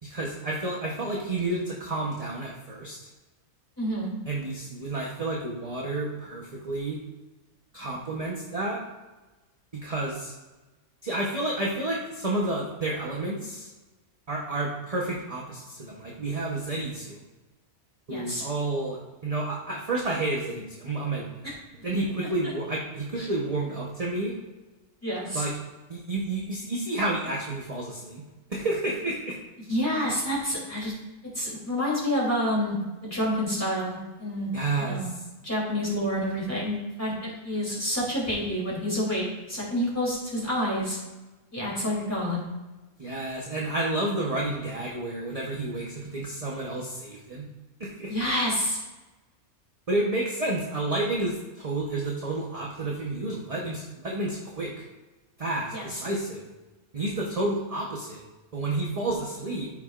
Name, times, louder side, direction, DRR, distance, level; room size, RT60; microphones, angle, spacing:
voice 1, 0.0-3.0 4.3-7.0 7.7-8.8 9.7-10.3 11.0-13.7 14.3-17.2 18.1-21.4 21.8-24.3 25.3-25.5 25.9-28.2 28.5-29.4 34.5-35.2 43.0-47.5 47.8-48.1 49.9-54.7 55.4-56.4 56.9-58.2 58.5-59.7, right 2 dB, 30° right, -3 dB, 1.0 m, -30 dB
voice 2, 3.8-4.1 18.1-18.4 21.4-21.5 23.2-23.3 25.0-25.4 29.7-30.9 31.3-34.5 34.8-35.1 35.4-41.0 41.5-42.4 48.1-48.8 55.7-55.8, equal, 10° left, -6 dB, 3.0 m, -28 dB
13.5 x 5.9 x 2.5 m, 1.1 s
omnidirectional pair, 1.5 m